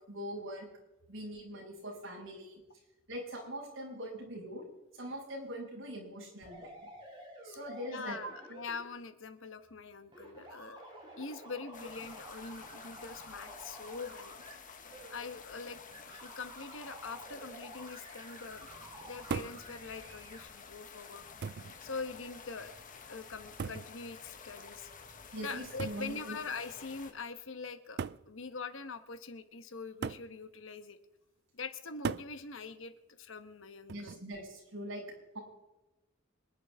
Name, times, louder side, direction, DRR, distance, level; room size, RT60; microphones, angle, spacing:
voice 1, 0.1-0.7 1.1-2.6 3.1-4.6 4.9-6.9 7.4-8.6 11.8-11.9 25.3-26.4 33.9-35.0 35.3-35.4, equal, 75° right, -4 dB, 6.3 m, -42 dB
sound 1, 6.4-8.8 10.1-14.5 14.9-15.2 15.9-20.4, right 1 dB, 25° right, 4.4 m, -51 dB
voice 2, 7.9-10.8 11.2-14.3 15.1-15.8 16.0-18.7 19.0-21.2 21.8-24.9 25.4-31.0 31.5-32.9 33.2-34.1, left 4 dB, 70° left, 10 dB, 1.2 m, -43 dB
sound 2, 11.7-27.1, left 5 dB, 40° left, 1.4 m, -51 dB
sound 3, 19.3-19.7 20.7-20.8 21.4-21.8 23.6-24.0 25.8-26.1 27.1-27.2 28.0-28.3 30.0-30.3 32.0-32.4 33.9-34.3, right 6 dB, 55° right, 0.4 m, -38 dB
26.0 x 11.0 x 3.6 m, 1.0 s
head